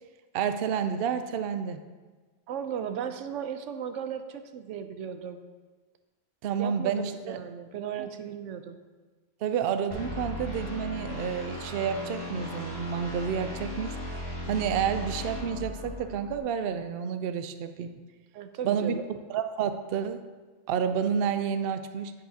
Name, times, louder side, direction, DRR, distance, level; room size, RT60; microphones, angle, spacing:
voice 1, 0.3-1.8 6.4-7.4 9.4-14.0 14.5-17.9 18.6-19.0 19.3-20.2 20.7-22.1, right 7 dB, 60° right, 10 dB, 0.7 m, -29 dB
voice 2, 2.5-5.4 6.6-8.8 18.3-19.1, right 8 dB, 90° right, 9 dB, 1.0 m, -36 dB
sound 1, 9.9-16.4, left 1 dB, 20° right, 2.1 m, -37 dB
10.0 x 8.6 x 2.8 m, 1.3 s
omnidirectional pair, 1.2 m